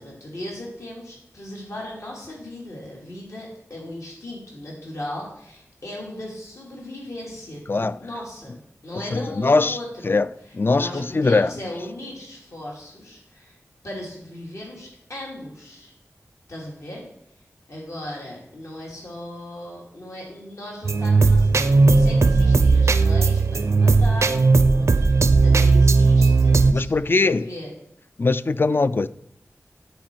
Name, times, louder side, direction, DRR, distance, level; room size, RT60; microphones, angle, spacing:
voice 1, 0.0-8.5 8.8-10.2 10.7-13.6 13.8-15.9 16.5-17.1 17.7-27.7, left 1 dB, 70° left, 2.3 m, -37 dB
voice 2, 9.1-9.8 10.0-10.3 10.5-11.5 26.7-27.5 28.2-29.1, left 3 dB, 45° left, 0.3 m, -21 dB
sound 1, 20.8-26.7, right 3 dB, 65° right, 0.5 m, -16 dB
10.0 x 5.0 x 4.4 m
wide cardioid pair, 60°, 5 cm